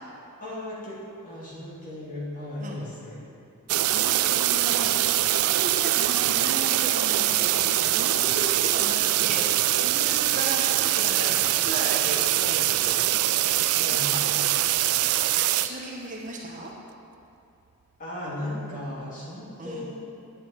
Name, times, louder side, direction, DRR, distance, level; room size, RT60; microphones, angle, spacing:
voice 1, 0.4-3.3 13.8-14.3 18.0-19.9, left 1 dB, 35° left, -7 dB, 2.5 m, -36 dB
sound 1, 3.7-15.7, right 14 dB, 75° right, 0.3 m, -23 dB
voice 2, 3.8-13.1 13.9-14.2 15.6-16.7 19.6-19.9, right 2 dB, 35° right, -1 dB, 0.9 m, -36 dB
9.2 x 8.5 x 4.3 m, 2.6 s
head